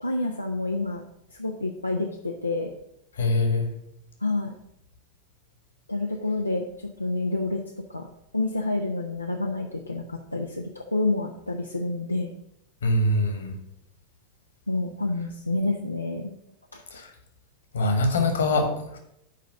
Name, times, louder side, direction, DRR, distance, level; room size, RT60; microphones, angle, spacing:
voice 1, 0.0-1.0 1.3-2.7 4.2-4.5 5.9-7.6 7.9-8.1 8.3-12.3 14.7-16.3 16.7-16.8, left 2 dB, 85° left, 2 dB, 0.6 m, -28 dB
voice 2, 3.2-3.7 12.8-13.5 16.9-17.1 17.7-19.0, left 2 dB, 65° left, 5 dB, 1.6 m, -23 dB
6.7 x 5.1 x 7.0 m, 0.79 s
figure-of-eight pair, 90°, 0 cm